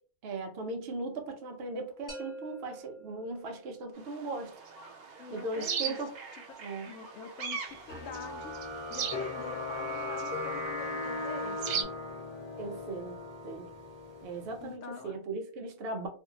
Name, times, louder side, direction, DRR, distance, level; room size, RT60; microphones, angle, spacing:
voice 1, 0.2-4.5 5.3-6.1 6.6-6.9 12.6-13.2 13.4-13.7 14.2-16.1, right 3 dB, 60° right, 0.6 m, -38 dB
sound 1, 2.1-3.9, right 1 dB, 25° left, 0.4 m, -46 dB
sound 2, 4.0-11.8, right 7 dB, 75° right, 1.1 m, -40 dB
voice 2, 5.2-6.0 6.8-8.6 8.9-11.9 14.6-15.2, left 7 dB, 65° left, 0.8 m, -45 dB
sound 3, 7.9-14.7, left 2 dB, 20° right, 0.9 m, -38 dB
2.6 x 2.5 x 2.7 m
omnidirectional pair, 1.6 m